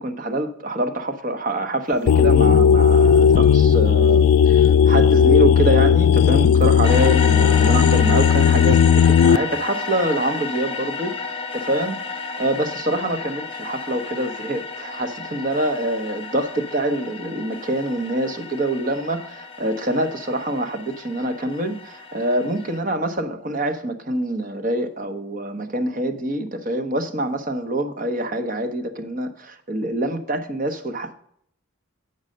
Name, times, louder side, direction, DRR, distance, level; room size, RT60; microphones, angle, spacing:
voice 1, 0.0-31.1, right 1 dB, 40° right, 7 dB, 0.9 m, -25 dB
sound 1, 2.1-9.4, left 7 dB, 85° left, 0.3 m, -15 dB
sound 2, 6.8-22.8, left 4 dB, 25° left, 0.9 m, -32 dB
8.8 x 5.4 x 6.3 m, 0.66 s
head